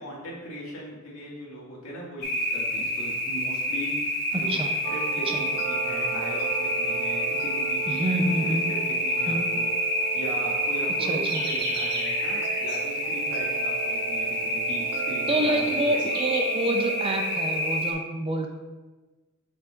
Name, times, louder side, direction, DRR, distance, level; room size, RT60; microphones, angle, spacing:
voice 1, 0.0-4.6 4.9-15.6 15.8-16.0, equal, 70° left, -5 dB, 2.0 m, -39 dB
sound 1, 2.2-17.9, equal, 50° left, 1.5 m, -28 dB
voice 2, 4.3-4.7 5.3-5.4 7.9-8.7 9.3-9.5 11.1-11.4 15.3-18.5, right 1 dB, 25° right, 4 dB, 0.5 m, -27 dB
sound 2, 4.8-17.8, right 10 dB, 80° right, 0.3 m, -36 dB
sound 3, 7.3-7.4 7.9-8.0 8.3-12.8 13.5-13.6 15.0-15.1 15.5-16.4, right 2 dB, 50° right, 1.4 m, -37 dB
7.2 x 6.2 x 2.5 m, 1.2 s
head